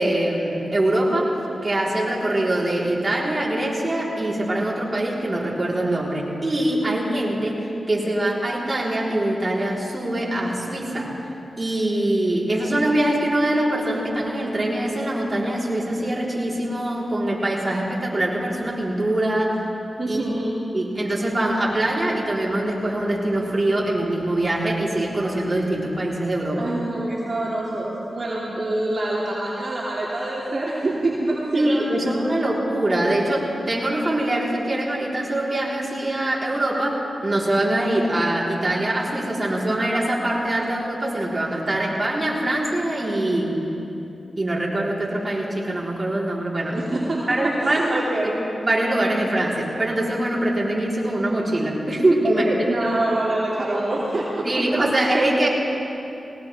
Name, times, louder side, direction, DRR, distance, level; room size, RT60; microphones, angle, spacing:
voice 1, 0.0-1.4 1.6-11.1 11.6-19.6 20.1-20.2 20.7-26.6 31.5-43.7 44.4-46.8 47.3-48.0 48.6-52.5 54.4-55.5, right 1 dB, 35° right, -5 dB, 4.3 m, -23 dB
voice 2, 20.0-20.5 26.6-32.0 46.7-47.3 47.6-48.3 52.2-54.5, right 2 dB, 55° right, -7 dB, 2.9 m, -25 dB
21.0 x 18.5 x 3.7 m, 2.9 s
cardioid pair, 45°, 0 cm